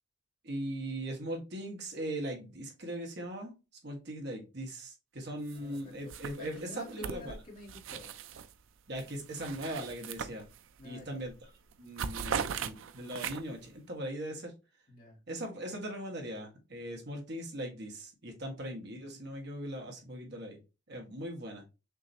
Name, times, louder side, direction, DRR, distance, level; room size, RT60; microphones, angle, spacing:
voice 1, 0.4-3.5 3.8-7.3 8.9-10.5 10.8-11.3 11.8-14.5 15.3-20.6 20.9-21.6, right 1 dB, 60° right, 1 dB, 1.5 m, -39 dB
voice 2, 5.4-8.2 10.8-11.2 14.9-15.2, left 2 dB, 45° left, -3 dB, 2.1 m, -49 dB
sound 1, 5.5-5.8 6.1-8.5 8.9-10.8 11.2-11.4 11.7-13.7, right 7 dB, 90° right, 0.4 m, -39 dB
6.1 x 2.9 x 2.8 m, 0.28 s
head